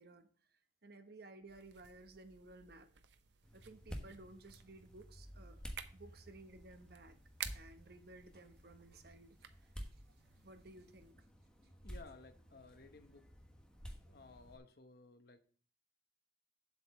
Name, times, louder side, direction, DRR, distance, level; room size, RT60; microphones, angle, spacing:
voice 1, 0.0-2.9 3.5-5.7 5.9-7.2 7.5-10.0 10.4-11.3, right 2 dB, 60° right, 8 dB, 1.1 m, -57 dB
sound 1, 1.5-11.1, right 9 dB, 90° right, 0.8 m, -54 dB
sound 2, 3.4-14.6, equal, 5° left, 1.2 m, -53 dB
voice 2, 11.8-13.3 13.9-15.4, left 3 dB, 60° left, 8 dB, 1.0 m, -58 dB
7.9 x 5.0 x 7.0 m, 0.43 s
head